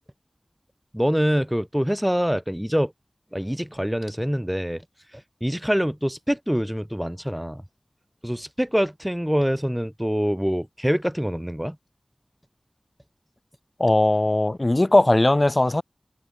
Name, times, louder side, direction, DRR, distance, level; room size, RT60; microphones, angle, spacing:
voice 1, 0.9-2.9 3.3-4.8 5.1-7.6 8.2-11.8, equal, 5° right, 7.5 m, -25 dB
voice 2, 13.8-15.8, left 1 dB, 35° left, 7.4 m, -19 dB
wide cardioid pair, 60°, 0 cm